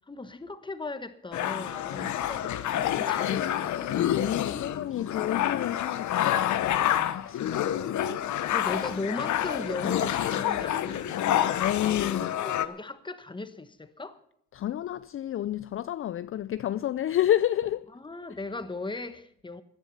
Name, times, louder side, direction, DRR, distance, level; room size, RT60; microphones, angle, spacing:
voice 1, 0.0-3.9 4.5-4.8 8.5-14.2 17.9-19.6, left 3 dB, 15° left, 1.2 m, -38 dB
sound 1, 1.3-12.7, left 11 dB, 70° left, 1.0 m, -28 dB
voice 2, 4.2-7.7 11.6-12.3 14.5-17.9, left 12 dB, 45° left, 0.5 m, -30 dB
16.5 x 11.0 x 5.6 m
cardioid pair, 90°, 30 cm